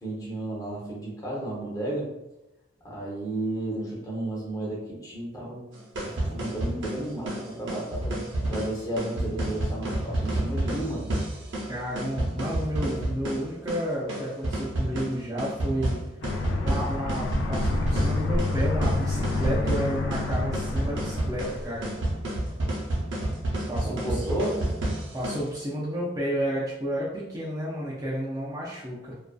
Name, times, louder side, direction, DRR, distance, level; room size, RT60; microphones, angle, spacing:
voice 1, 0.0-2.1 2.8-5.6 6.0-11.1 23.8-24.6, right 1 dB, 20° left, -4 dB, 0.7 m, -33 dB
sound 1, 5.7-25.5, right 1 dB, 70° right, 0.7 m, -30 dB
voice 2, 11.7-16.0 16.6-21.9 23.7-24.2 25.1-29.2, equal, 20° right, -6 dB, 0.4 m, -31 dB
Aircraft, 16.2-22.3, left 3 dB, 75° left, 0.4 m, -29 dB
2.4 x 2.2 x 2.2 m, 0.92 s
head